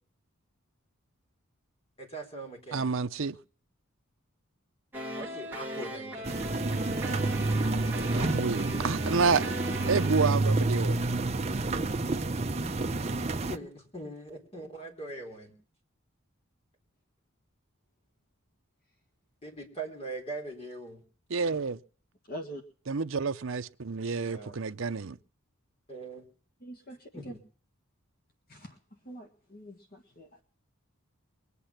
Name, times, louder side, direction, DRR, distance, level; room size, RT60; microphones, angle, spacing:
voice 1, 2.0-2.9 5.2-6.9 13.5-15.5 19.4-21.0 24.2-24.5 25.9-26.3 27.1-27.4, right 2 dB, 30° left, 4.0 m, -41 dB
voice 2, 2.7-3.4 8.1-9.4 9.9-11.0 21.3-21.8 22.9-25.2, right 4 dB, 65° right, 0.7 m, -29 dB
sound 1, 4.9-10.3, right 1 dB, 10° right, 1.9 m, -38 dB
sound 2, 6.2-13.6, right 2 dB, 30° right, 0.8 m, -29 dB
voice 3, 22.3-22.6 26.6-27.3 28.5-28.8 29.1-30.4, equal, 45° left, 1.7 m, -44 dB
22.5 x 8.5 x 5.9 m
head